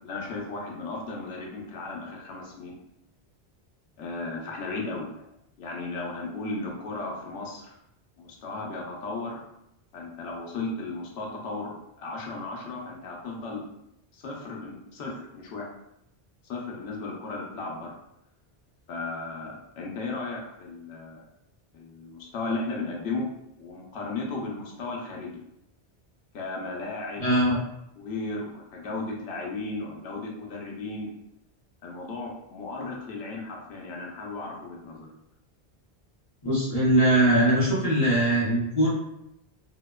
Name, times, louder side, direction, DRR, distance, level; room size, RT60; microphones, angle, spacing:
voice 1, 0.0-2.8 4.0-5.3 5.6-7.7 8.2-9.4 9.9-13.7 14.1-15.7 16.4-17.9 18.9-21.2 21.7-23.3 23.6-25.4 26.3-27.5 28.0-31.1 31.8-35.1, left 3 dB, 85° left, -1 dB, 0.9 m, -35 dB
voice 2, 27.2-27.6 36.4-38.9, right 1 dB, 40° left, -9 dB, 0.8 m, -21 dB
2.6 x 2.1 x 2.2 m, 0.82 s
omnidirectional pair, 1.1 m